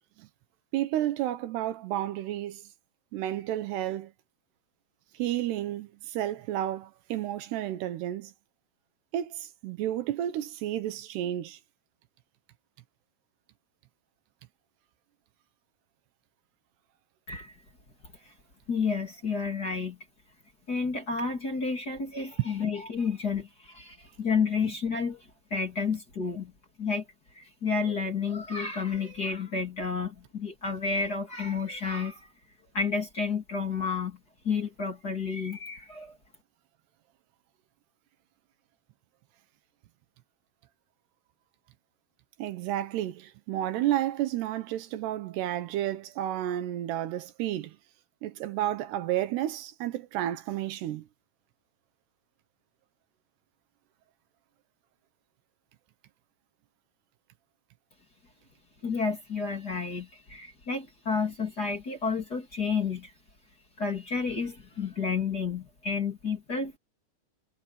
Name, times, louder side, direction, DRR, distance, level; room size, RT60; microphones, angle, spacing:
voice 1, 0.7-2.6 3.1-4.1 5.1-8.3 9.1-11.6 42.4-47.8 48.2-51.1, right 12 dB, 75° right, 3.1 m, -31 dB
voice 2, 18.7-20.0 20.7-26.5 26.8-27.0 27.3-32.3 32.7-34.2 34.4-36.2 58.8-63.1 63.8-66.8, left 5 dB, 25° left, 2.7 m, -31 dB
omnidirectional pair, 4.9 m